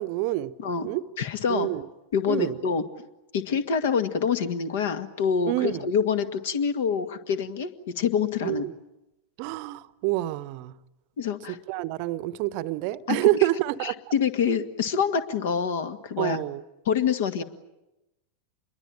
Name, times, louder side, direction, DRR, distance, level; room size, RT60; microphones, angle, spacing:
voice 1, 0.0-0.5 0.8-1.0 1.5-1.8 2.3-2.6 5.5-5.9 8.4-8.7 9.4-10.7 11.5-13.9 16.2-16.6, right 16 dB, 45° right, 0.9 m, -27 dB
voice 2, 1.2-1.7 2.1-2.8 3.3-5.5 5.8-7.7 7.9-8.6 11.2-11.6 13.1-13.2 13.8-16.4 16.9-17.4, left 6 dB, 55° left, 1.9 m, -26 dB
27.5 x 22.5 x 9.0 m
figure-of-eight pair, 90°, 0 cm